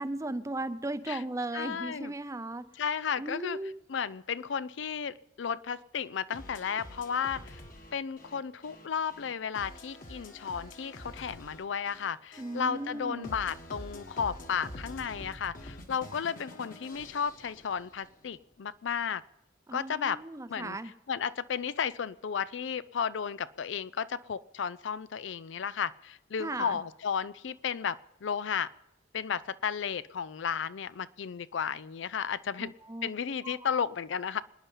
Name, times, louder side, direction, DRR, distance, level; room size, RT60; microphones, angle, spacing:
voice 1, 0.0-2.7 3.2-3.8 12.4-13.3 19.7-20.9 26.4-26.8 32.6-33.1 33.4-33.6, right 2 dB, 15° right, 12 dB, 0.6 m, -36 dB
voice 2, 1.5-2.1 2.8-3.6 3.9-7.6 7.9-19.2 19.7-20.2 20.5-20.8 21.1-28.7 29.1-32.7 33.0-34.4, left 7 dB, 75° left, 17 dB, 0.5 m, -33 dB
sound 1, 6.3-18.2, left 1 dB, 45° left, 1.7 m, -47 dB
26.0 x 9.7 x 5.5 m, 0.93 s
head